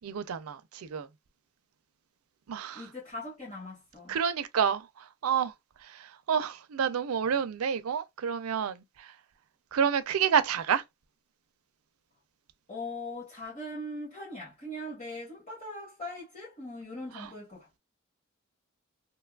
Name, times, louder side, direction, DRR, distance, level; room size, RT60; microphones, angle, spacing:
voice 1, 0.0-0.6 0.9-1.1 2.5-2.8 4.1-4.8 5.2-5.5 6.3-8.8 9.7-10.8 17.2-17.3, right 7 dB, 90° right, 0.4 m, -28 dB
voice 2, 2.7-4.1 12.7-17.8, left 1 dB, 35° left, 1.4 m, -40 dB
2.7 x 2.3 x 2.2 m
head